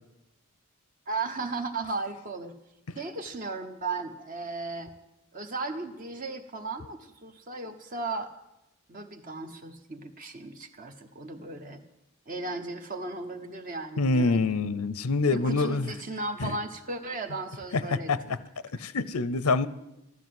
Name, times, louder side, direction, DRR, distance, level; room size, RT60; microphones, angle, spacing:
voice 1, 1.1-2.5 3.0-4.9 5.3-8.3 8.9-11.8 12.3-14.6 15.3-18.1, right 3 dB, 35° right, 5 dB, 0.9 m, -36 dB
voice 2, 14.0-15.9 16.4-16.5 17.7-18.4 18.8-19.7, left 3 dB, 90° left, 16 dB, 0.7 m, -26 dB
14.0 x 12.0 x 7.7 m, 0.91 s
head